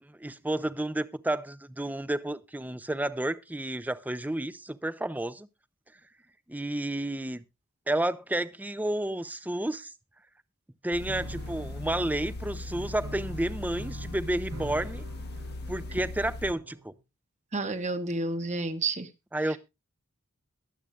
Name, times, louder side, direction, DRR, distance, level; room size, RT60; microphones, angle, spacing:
voice 1, 0.0-5.5 6.5-7.4 7.9-9.9 10.8-15.0 15.7-16.9 19.3-19.6, right 1 dB, 10° right, 0.5 m, -31 dB
sound 1, 10.9-16.5, left 2 dB, 50° left, 1.0 m, -38 dB
Piano, 11.1-17.0, right 2 dB, 75° right, 1.3 m, -46 dB
voice 2, 17.5-19.1, right 3 dB, 35° right, 1.2 m, -30 dB
22.0 x 8.1 x 2.4 m
head